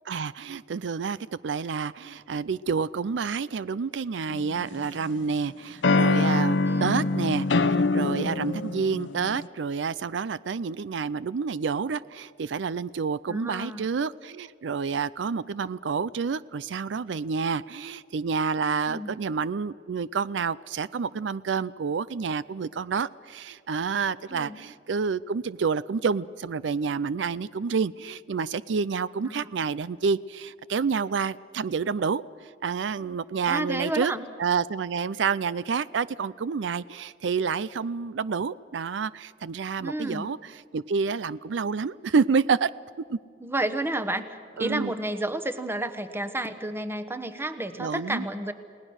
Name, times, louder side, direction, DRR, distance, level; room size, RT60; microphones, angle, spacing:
voice 1, 0.1-32.2 32.6-34.1 34.4-40.4 40.7-42.7 43.1-43.2 44.6-44.9 47.8-48.3, right 5 dB, 85° right, 18 dB, 0.5 m, -28 dB
sound 1, 4.3-5.2 5.8-9.5, left 3 dB, 85° left, 0.7 m, -24 dB
voice 2, 6.7-7.1 13.3-13.9 18.8-19.1 24.3-24.6 29.2-29.5 33.5-34.3 39.8-40.3 43.4-48.5, right 1 dB, 15° right, 9 dB, 1.2 m, -31 dB
30.0 x 19.0 x 6.4 m, 2.3 s
head